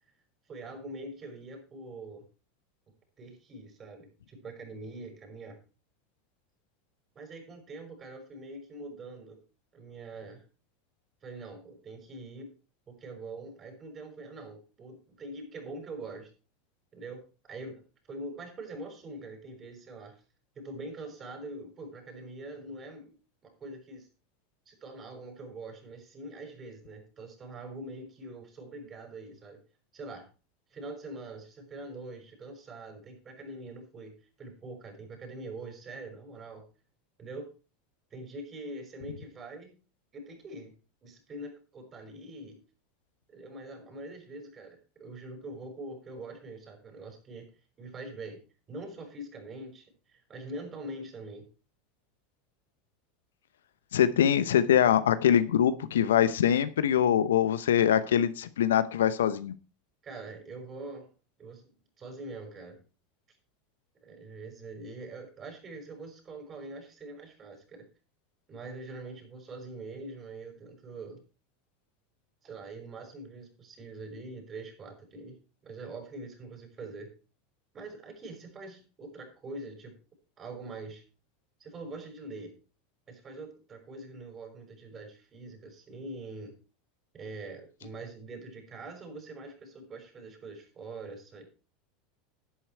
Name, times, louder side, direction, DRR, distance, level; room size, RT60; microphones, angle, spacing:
voice 1, 0.5-2.2 3.2-5.6 7.2-9.4 9.7-10.4 11.2-12.5 12.9-16.3 16.9-20.2 20.6-23.1 23.4-24.1 24.7-29.6 29.9-30.3 30.7-36.6 37.2-37.5 38.1-39.7 40.1-40.7 41.0-42.6 43.3-47.5 47.8-48.4 48.7-51.5 60.0-61.1 61.4-61.6 62.0-62.8 64.0-67.9 68.5-71.2 72.4-75.4 75.6-77.1 77.7-80.0 80.4-81.0 81.6-82.5 83.1-86.6 87.1-91.5, right 2 dB, 35° right, 3 dB, 5.6 m, -44 dB
voice 2, 53.9-59.5, left 9 dB, 80° left, 15 dB, 0.8 m, -23 dB
11.5 x 8.8 x 4.6 m, 0.34 s
hypercardioid pair, 85°, 0 cm